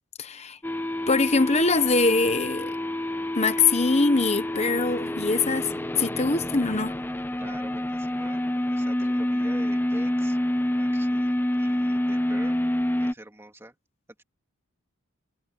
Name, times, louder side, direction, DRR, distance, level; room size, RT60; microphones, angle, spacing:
voice 1, 0.2-0.6 1.1-2.7 3.3-5.7 6.0-7.0, left 3 dB, 30° left, 1.0 m, -23 dB
sound 1, 0.6-13.1, left 1 dB, 10° left, 0.6 m, -27 dB
voice 2, 7.4-8.4 8.7-10.4 10.8-12.6 13.0-13.7, right 1 dB, 10° right, 2.8 m, -45 dB
head